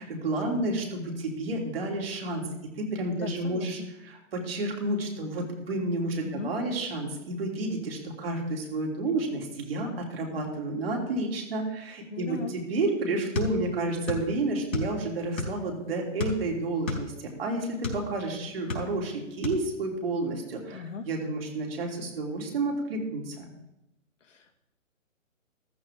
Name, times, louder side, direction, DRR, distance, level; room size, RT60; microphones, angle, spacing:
voice 1, 0.0-2.5 2.8-23.5, right 2 dB, 45° right, 0 dB, 3.4 m, -30 dB
voice 2, 3.1-3.9 6.2-6.5 12.1-12.5 20.7-21.1 24.2-24.6, left 5 dB, 65° left, 4 dB, 2.0 m, -39 dB
sound 1, 13.3-14.3 14.5-15.7 16.2-18.1 18.5-19.1 19.4-19.6, left 3 dB, 85° left, 4.3 m, -32 dB
14.0 x 14.0 x 3.7 m, 0.85 s
hypercardioid pair, 165°, 40 cm